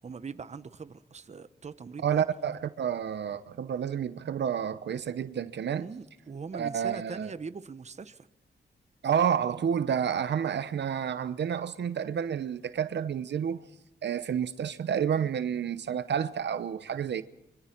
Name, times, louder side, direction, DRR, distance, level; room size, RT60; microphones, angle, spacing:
voice 1, 0.0-2.2 5.7-8.3, right 5 dB, 35° right, 1.0 m, -41 dB
voice 2, 2.0-5.9 6.5-7.3 9.0-13.6 14.0-17.2, right 8 dB, 70° right, 0.9 m, -30 dB
25.5 x 24.5 x 4.6 m
cardioid pair, 95°, 19 cm